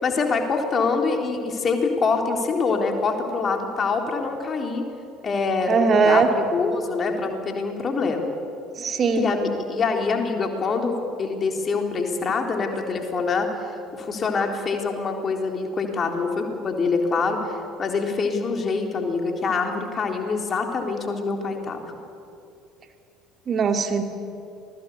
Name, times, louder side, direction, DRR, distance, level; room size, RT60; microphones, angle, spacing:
voice 1, 0.0-4.8 5.2-8.4 9.2-13.5 13.9-21.8, left 4 dB, 35° left, 3 dB, 3.8 m, -25 dB
voice 2, 5.7-6.3 8.8-9.3 23.5-24.0, right 5 dB, 35° right, 5 dB, 2.5 m, -20 dB
27.5 x 20.5 x 8.4 m, 2.6 s
figure-of-eight pair, 60°, 0 cm